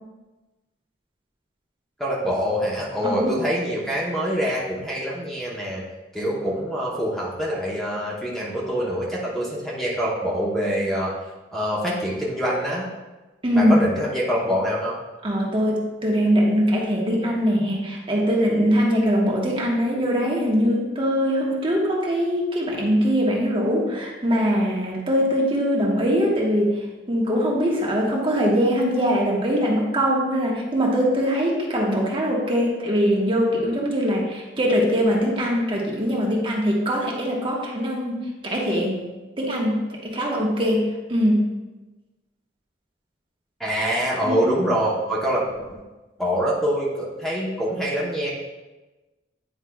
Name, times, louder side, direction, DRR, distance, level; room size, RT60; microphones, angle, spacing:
voice 1, 2.0-5.8 6.1-11.1 11.5-12.9 13.5-15.0 43.6-45.7 46.2-48.3, equal, ahead, -5 dB, 0.9 m, -25 dB
voice 2, 3.0-3.4 13.4-13.7 15.2-26.8 27.1-39.0 39.4-41.5 44.2-44.5, equal, 30° right, -3 dB, 1.2 m, -22 dB
9.7 x 4.8 x 2.3 m, 1.1 s
head